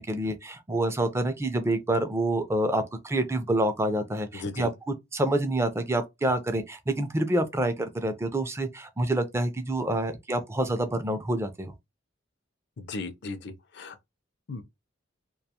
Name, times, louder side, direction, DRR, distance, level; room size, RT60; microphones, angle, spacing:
voice 1, 0.0-4.7 5.1-11.7, right 1 dB, 15° right, 0.4 m, -27 dB
voice 2, 4.3-4.7 12.8-14.0 14.5-14.6, left 3 dB, 60° left, 0.5 m, -36 dB
2.3 x 2.2 x 2.8 m
head